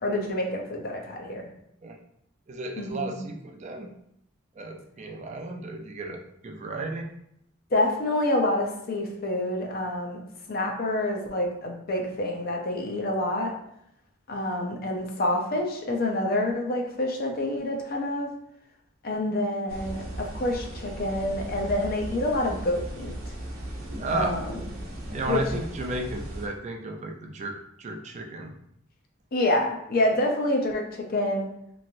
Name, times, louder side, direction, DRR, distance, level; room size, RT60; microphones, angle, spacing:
voice 1, 0.0-1.5 2.8-3.2 7.7-10.2 10.5-13.5 14.3-18.3 19.0-23.1 24.1-24.4 25.3-25.4 29.3-31.5, left 1 dB, 45° left, 1 dB, 0.5 m, -27 dB
voice 2, 2.5-3.9 4.6-7.1 24.0-24.3 25.1-28.6, right 2 dB, 35° right, 2 dB, 0.4 m, -33 dB
sound 1, 19.7-26.5, right 1 dB, 80° right, 0.8 m, -37 dB
3.0 x 2.5 x 2.6 m, 0.76 s
head